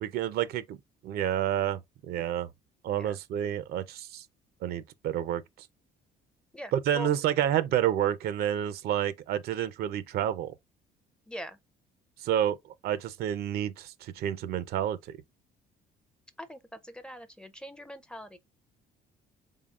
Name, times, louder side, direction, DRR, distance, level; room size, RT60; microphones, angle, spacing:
voice 1, 0.0-0.8 1.0-2.5 2.8-4.2 4.6-5.4 6.7-10.5 12.2-12.6 12.8-15.2, right 10 dB, 70° right, 0.5 m, -29 dB
voice 2, 6.5-7.1 11.3-11.6 16.4-18.4, equal, 5° left, 0.5 m, -42 dB
3.7 x 3.5 x 2.3 m
cardioid pair, 110°, 17 cm